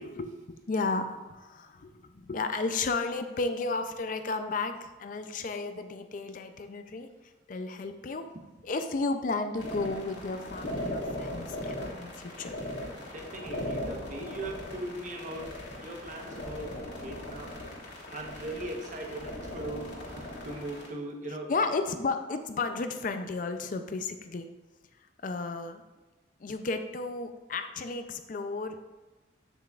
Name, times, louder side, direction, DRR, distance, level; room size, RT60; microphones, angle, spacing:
voice 1, 0.0-8.3 8.6-12.6 21.5-24.5 25.2-25.8 26.4-28.9, left 3 dB, 45° left, 8 dB, 0.4 m, -33 dB
sound 1, 9.6-20.9, left 1 dB, 65° left, 1.8 m, -39 dB
voice 2, 13.0-17.6 18.1-21.5, right 1 dB, 40° right, 2 dB, 1.0 m, -40 dB
8.0 x 7.5 x 2.4 m, 1.2 s
head